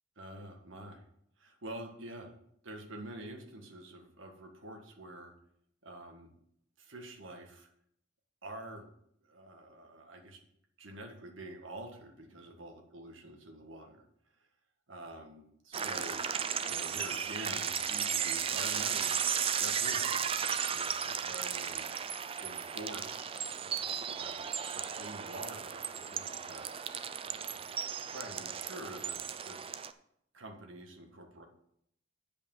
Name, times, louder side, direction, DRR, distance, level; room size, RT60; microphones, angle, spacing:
voice 1, 0.2-1.0 1.4-2.3 2.6-5.3 5.8-6.3 6.8-7.7 8.4-8.9 9.2-10.4 10.8-14.0 14.9-16.3 16.7-20.2 20.7-21.9 22.4-23.3 23.6-24.5 24.7-26.6 27.2-27.6 28.0-29.2 29.4-29.6 30.3-31.4, right 1 dB, 75° right, 2 dB, 1.7 m, -47 dB
sound 1, 15.7-29.9, right 7 dB, 30° right, 0.4 m, -35 dB
8.2 x 5.3 x 7.1 m, 0.71 s
head